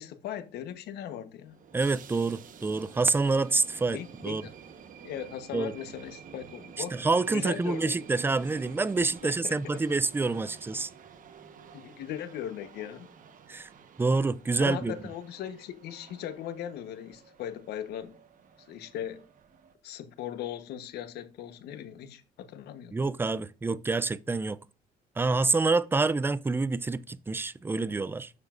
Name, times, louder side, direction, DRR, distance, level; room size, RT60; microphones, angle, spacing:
voice 1, 0.0-1.6 3.9-4.5 5.0-7.0 7.3-7.9 9.2-9.8 11.7-13.1 14.6-18.2 18.7-19.3 19.8-22.9, left 10 dB, 75° left, 1.1 m, -38 dB
sound 1, 1.4-19.7, right 6 dB, 50° right, 1.2 m, -51 dB
voice 2, 1.7-4.4 5.5-5.7 6.9-10.9 13.5-13.7 14.0-14.9 22.9-24.6 25.2-28.3, right 3 dB, 15° right, 0.4 m, -27 dB
9.6 x 6.9 x 2.5 m
cardioid pair, 110°, 17 cm